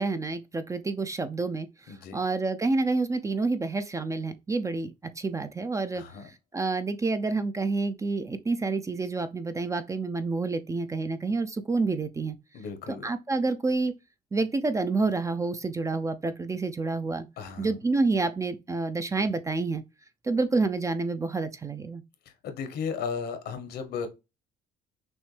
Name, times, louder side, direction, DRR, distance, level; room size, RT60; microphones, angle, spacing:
voice 1, 0.0-6.0 6.5-12.4 13.0-13.9 14.3-17.3 17.6-19.8 20.2-22.0, right 3 dB, 20° right, 0.4 m, -28 dB
voice 2, 1.9-2.2 5.9-6.3 12.5-13.1 17.4-17.8 22.2-24.1, left 6 dB, 75° left, 1.1 m, -35 dB
6.1 x 2.1 x 3.3 m
cardioid pair, 110°, 17 cm